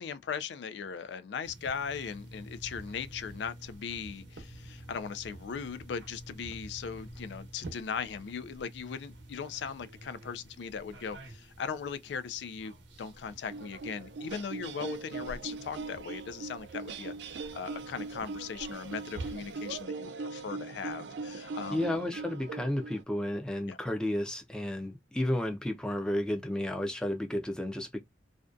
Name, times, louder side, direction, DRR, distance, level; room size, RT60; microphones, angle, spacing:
voice 1, 0.0-21.9 23.7-23.8, left 6 dB, 75° left, 0.3 m, -39 dB
sound 1, 1.4-19.8, right 1 dB, 90° right, 0.8 m, -49 dB
sound 2, 13.5-23.0, right 3 dB, 75° right, 0.4 m, -40 dB
voice 2, 21.7-28.0, left 1 dB, 5° left, 0.4 m, -32 dB
2.5 x 2.2 x 2.4 m
head